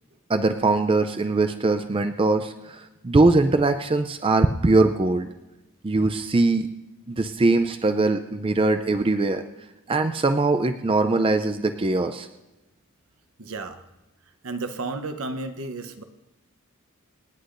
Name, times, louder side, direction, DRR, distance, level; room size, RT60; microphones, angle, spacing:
voice 1, 0.3-5.3 5.8-6.7 7.1-9.4 9.9-12.3, right 3 dB, 25° right, 8 dB, 0.4 m, -21 dB
voice 2, 13.4-13.8 14.4-16.0, right 3 dB, 65° right, 8 dB, 0.9 m, -32 dB
27.0 x 9.8 x 2.6 m, 1.0 s
head